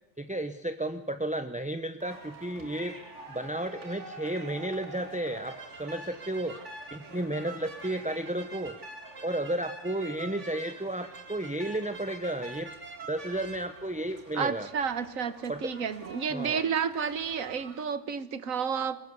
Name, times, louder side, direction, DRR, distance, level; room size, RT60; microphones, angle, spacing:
voice 1, 0.2-3.0 3.3-6.6 6.9-8.8 9.2-12.7 13.1-14.7 15.5-15.7 16.3-16.7, right 1 dB, 5° right, 9 dB, 0.6 m, -33 dB
sound 1, 2.0-17.8, right 3 dB, 60° right, 3.1 m, -46 dB
voice 2, 14.3-19.0, right 6 dB, 80° right, 13 dB, 1.6 m, -31 dB
22.5 x 20.0 x 8.2 m, 0.87 s
omnidirectional pair, 1.4 m